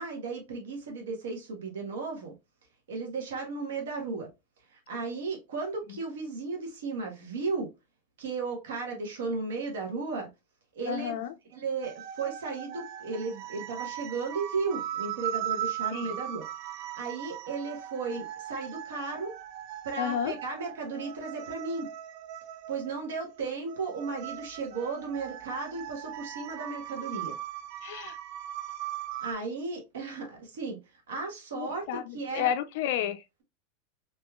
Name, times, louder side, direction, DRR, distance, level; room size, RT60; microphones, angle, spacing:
voice 1, 0.0-2.3 2.9-4.3 4.7-7.7 8.2-10.3 10.7-11.2 11.5-16.4 16.7-19.3 19.8-21.9 22.7-27.3 29.2-32.5, right 4 dB, 85° right, 1.4 m, -35 dB
voice 2, 10.9-11.3 15.9-16.1 20.0-20.3 27.8-28.2 31.6-33.2, left 10 dB, 65° left, 0.3 m, -31 dB
sound 1, 11.8-29.3, right 12 dB, 55° right, 0.4 m, -39 dB
3.5 x 3.0 x 2.3 m
supercardioid pair, 125°, 0 cm